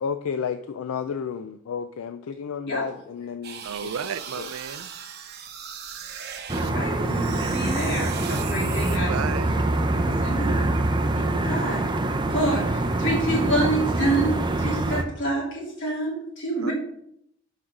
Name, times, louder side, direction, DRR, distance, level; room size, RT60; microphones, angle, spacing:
voice 1, 0.0-3.9 4.4-4.5, left 6 dB, 80° left, 0.4 m, -32 dB
sound 1, 3.4-6.7 7.0-9.0, right 8 dB, 55° right, 0.9 m, -38 dB
voice 2, 3.6-4.9 9.1-9.5 16.6-16.7, right 7 dB, 80° right, 0.4 m, -32 dB
voice 3, 6.5-9.1 9.8-10.6 11.2-11.9 12.3-16.7, right 1 dB, 60° left, 3.3 m, -28 dB
sound 2, 6.5-15.0, right 2 dB, 20° right, 0.6 m, -25 dB
6.3 x 5.2 x 5.9 m
head